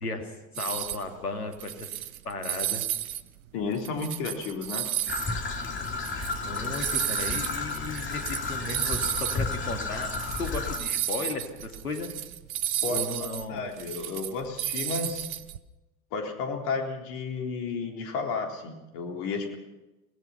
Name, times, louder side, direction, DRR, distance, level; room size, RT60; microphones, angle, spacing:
voice 1, 0.0-1.9 2.2-2.8 6.3-12.1 12.9-13.7, left 2 dB, 80° left, 5 dB, 2.6 m, -35 dB
sound 1, 0.5-1.1 1.5-3.2 3.6-9.4 9.7-9.8 10.0-15.6, right 11 dB, 70° right, 1.0 m, -33 dB
voice 2, 3.5-4.9 12.8-15.3 16.1-19.5, left 4 dB, 55° left, 3 dB, 3.8 m, -32 dB
Traffic noise roadway noise / Trickle dribble, 5.1-10.8, left 3 dB, 25° left, 3.2 m, -32 dB
24.0 x 18.5 x 5.8 m, 1.0 s
figure-of-eight pair, 75°, 44 cm